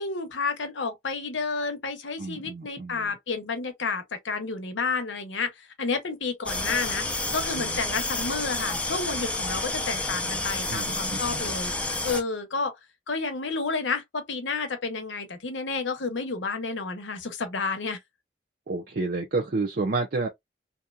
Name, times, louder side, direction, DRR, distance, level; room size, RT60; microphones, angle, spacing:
voice 1, 0.0-7.0 7.3-12.7 13.1-18.0, left 4 dB, 90° left, 0.8 m, -30 dB
voice 2, 2.2-3.1 7.6-7.8 10.7-11.4 18.7-20.3, right 3 dB, 50° right, 0.5 m, -30 dB
sound 1, 6.5-12.2, left 2 dB, 5° left, 0.4 m, -30 dB
2.8 x 2.2 x 2.3 m
head